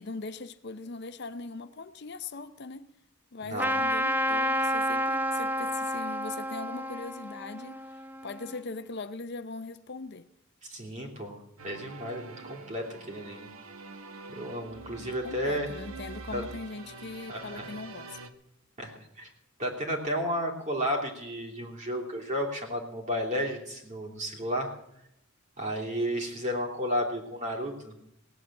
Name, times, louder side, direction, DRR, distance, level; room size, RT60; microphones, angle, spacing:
voice 1, 0.0-2.9 3.3-7.9 8.2-10.3 15.0-18.2, left 3 dB, 50° left, 0.6 m, -40 dB
voice 2, 3.4-3.7 10.6-11.3 11.6-13.5 14.3-15.7 16.3-16.4 17.3-17.7 18.8-19.3 19.6-24.7 25.6-27.9, equal, 35° right, 3.0 m, -32 dB
Trumpet, 3.6-8.6, equal, 10° right, 0.5 m, -30 dB
sound 1, 11.6-18.3, right 4 dB, 85° right, 1.2 m, -45 dB
18.0 x 8.0 x 8.8 m
head